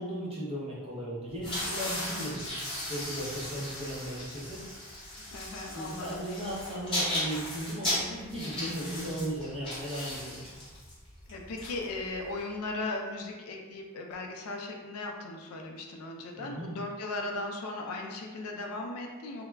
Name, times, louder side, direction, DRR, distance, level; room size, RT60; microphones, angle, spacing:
voice 1, 0.0-2.5 2.9-4.6 5.7-10.5 16.4-16.7, equal, 25° right, -7 dB, 0.7 m, -36 dB
sound 1, 1.3-12.4, left 1 dB, 20° left, 0.9 m, -36 dB
voice 2, 5.3-6.4 11.3-19.5, left 2 dB, 75° left, 2 dB, 0.4 m, -37 dB
2.2 x 2.0 x 3.3 m, 1.4 s
head